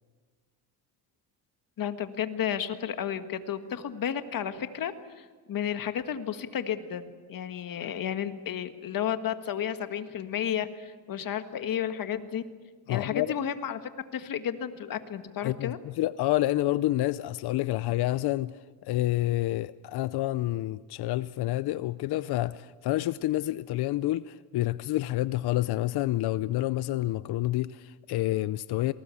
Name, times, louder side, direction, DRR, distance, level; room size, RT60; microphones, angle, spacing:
voice 1, 1.8-12.4 12.9-13.8 14.1-15.8, left 9 dB, 55° left, 1.7 m, -32 dB
voice 2, 12.9-13.3 15.4-18.5 18.8-28.9, left 16 dB, 75° left, 0.6 m, -28 dB
27.0 x 20.0 x 8.4 m
cardioid pair, 95°, 39 cm